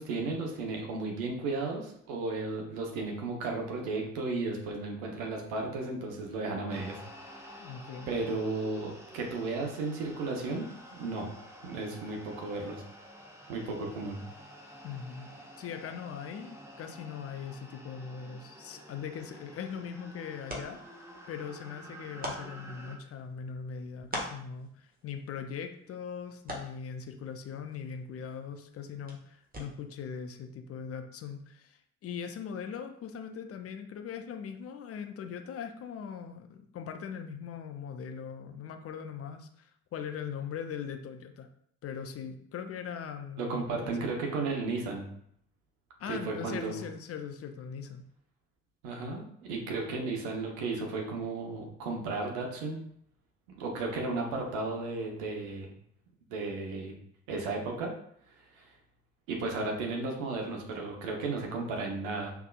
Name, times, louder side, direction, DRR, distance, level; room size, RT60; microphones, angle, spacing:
voice 1, 0.0-7.7 8.1-10.6 10.9-11.3 11.6-12.8 13.5-14.2 43.4-45.0 46.1-46.8 48.8-52.8 53.5-55.7 56.3-56.9 57.3-57.9 58.5-58.7 59.3-62.3, right 3 dB, 70° right, 1 dB, 1.0 m, -34 dB
sound 1, 6.7-23.0, equal, 10° right, 1.1 m, -50 dB
voice 2, 7.6-8.1 14.8-15.3 15.6-21.0 21.3-41.5 41.8-44.1 46.0-48.0, left 7 dB, 45° left, 7 dB, 0.6 m, -40 dB
sound 2, 19.3-30.0, equal, 25° right, 1.6 m, -46 dB
5.6 x 3.5 x 2.4 m, 0.67 s
figure-of-eight pair, 40°, 34 cm